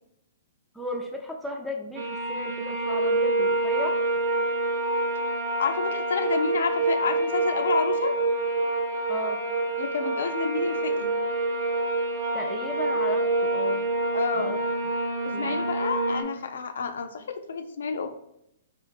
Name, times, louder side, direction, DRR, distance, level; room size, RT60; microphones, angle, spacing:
voice 1, 0.7-3.9 9.1-9.4 12.3-13.9 14.3-14.6 15.3-15.6, left 1 dB, ahead, 1 dB, 0.4 m, -35 dB
sound 1, 2.0-16.2, right 2 dB, 60° right, 0.4 m, -27 dB
voice 2, 5.6-8.2 9.8-11.2 14.1-14.6 15.2-18.1, left 5 dB, 75° left, 7 dB, 0.3 m, -29 dB
2.9 x 2.4 x 2.5 m, 0.80 s
hypercardioid pair, 125°, 0 cm